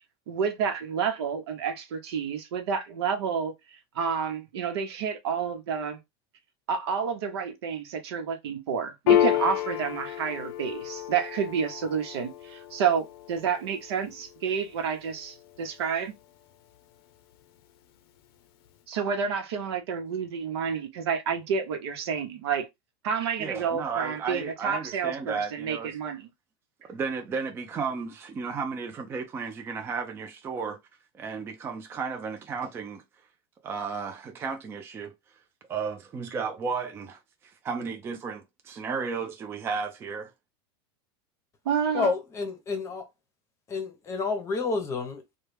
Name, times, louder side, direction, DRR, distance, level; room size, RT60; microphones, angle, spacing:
voice 1, 0.3-6.0 6.7-16.1 18.9-22.7 23.0-26.3 41.6-42.1, right 6 dB, 85° right, 0.9 m, -29 dB
Piano, 9.1-16.0, left 11 dB, 70° left, 0.6 m, -30 dB
voice 2, 23.4-25.9 26.8-30.8 31.2-33.0 33.6-35.1 35.7-40.3, right 5 dB, 20° right, 0.4 m, -33 dB
voice 3, 41.9-43.1 43.7-45.4, left 4 dB, 20° left, 0.7 m, -29 dB
3.2 x 2.3 x 3.2 m
supercardioid pair, 150°, 13 cm